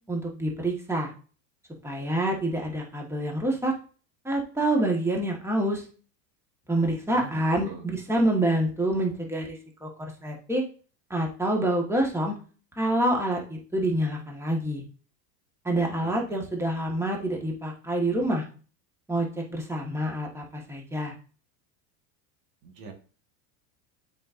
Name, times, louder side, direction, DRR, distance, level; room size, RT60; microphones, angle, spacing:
voice 1, 0.1-1.1 1.8-3.7 4.2-5.8 6.7-9.6 9.8-9.9 10.2-10.6 11.1-12.3 12.7-14.8 15.6-18.4 19.1-21.1, right 1 dB, 5° right, 0 dB, 1.7 m, -27 dB
voice 2, 7.1-7.8 16.0-16.2 22.6-22.9, right 5 dB, 75° right, 3 dB, 1.9 m, -42 dB
7.5 x 5.2 x 2.7 m, 0.38 s
supercardioid pair, 110°, 50 cm